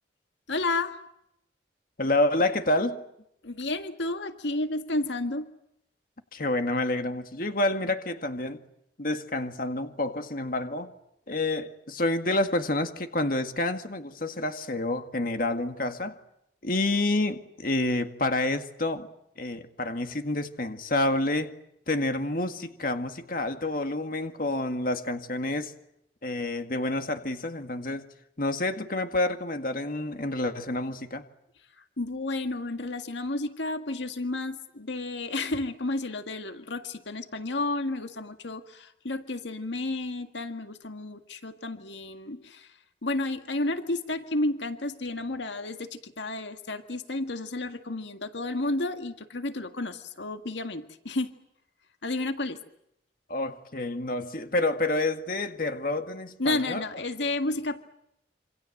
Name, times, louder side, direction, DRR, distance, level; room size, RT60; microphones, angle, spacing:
voice 1, 0.5-1.0 3.4-5.5 32.0-42.7 43.0-51.3 52.0-52.6 56.4-57.8, left 2 dB, 80° left, 1.9 m, -31 dB
voice 2, 2.0-3.0 6.3-8.6 9.0-10.9 11.3-16.2 16.6-19.1 19.4-21.5 21.9-25.7 26.2-28.1 28.4-31.2 53.3-56.8, left 2 dB, 50° left, 2.0 m, -28 dB
27.5 x 26.5 x 7.9 m
head